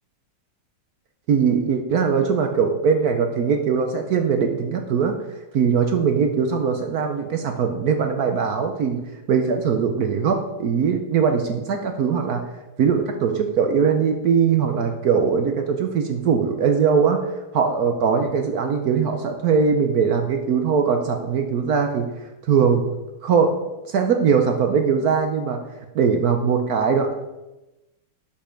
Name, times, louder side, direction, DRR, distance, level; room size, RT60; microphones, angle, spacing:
voice 1, 1.3-5.2 5.5-9.0 9.3-12.4 12.8-17.2 17.5-22.1 22.5-22.9 23.2-23.5 23.9-25.6 25.9-27.1, right 6 dB, 60° right, 5 dB, 1.2 m, -21 dB
12.0 x 5.5 x 5.2 m, 1.0 s
omnidirectional pair, 2.0 m